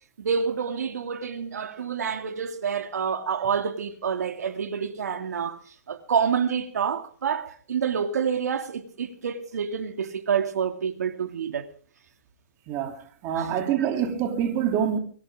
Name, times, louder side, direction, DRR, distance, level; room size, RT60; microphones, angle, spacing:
voice 1, 0.2-5.6 5.9-11.6 13.3-13.5 13.8-13.9, right 7 dB, 80° right, 2.6 m, -28 dB
voice 2, 12.7-15.0, right 9 dB, 30° right, 3.1 m, -26 dB
23.5 x 16.0 x 3.7 m
hypercardioid pair, 145°, 9 cm